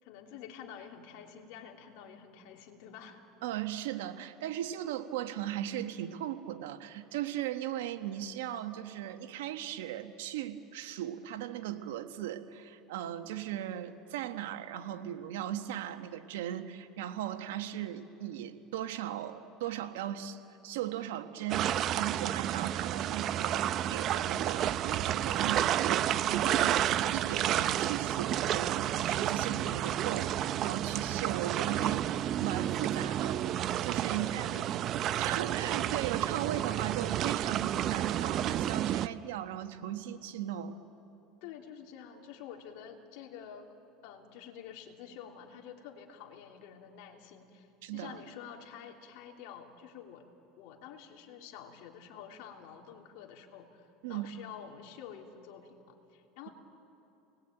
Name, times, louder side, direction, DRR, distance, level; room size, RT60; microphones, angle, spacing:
voice 1, 0.0-3.2 34.1-34.8 35.1-35.3 41.4-43.7 44.0-50.3 50.6-56.5, left 8 dB, 70° left, 1 dB, 3.0 m, -49 dB
voice 2, 3.4-34.5 35.2-40.8 47.8-48.1 54.0-54.3, right 12 dB, 90° right, 7 dB, 1.4 m, -37 dB
sound 1, 21.5-39.1, right 11 dB, 45° right, 0.6 m, -31 dB
30.0 x 20.0 x 9.2 m, 2.9 s
supercardioid pair, 120°, 0 cm